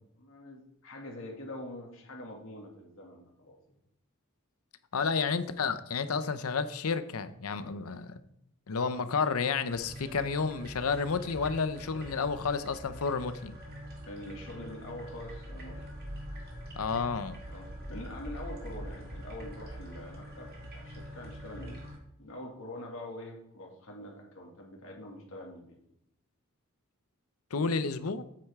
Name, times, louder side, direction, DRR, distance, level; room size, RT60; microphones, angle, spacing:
voice 1, 0.2-3.6 14.1-15.9 17.5-21.8 22.2-25.8, left 1 dB, 70° left, 0 dB, 2.2 m, -44 dB
voice 2, 4.9-8.2 8.7-13.5 16.8-17.4 27.5-28.2, left 5 dB, 85° left, 12 dB, 0.7 m, -31 dB
sound 1, 9.7-22.0, equal, 45° right, 2.2 m, -44 dB
8.7 x 8.0 x 3.6 m, 0.77 s
head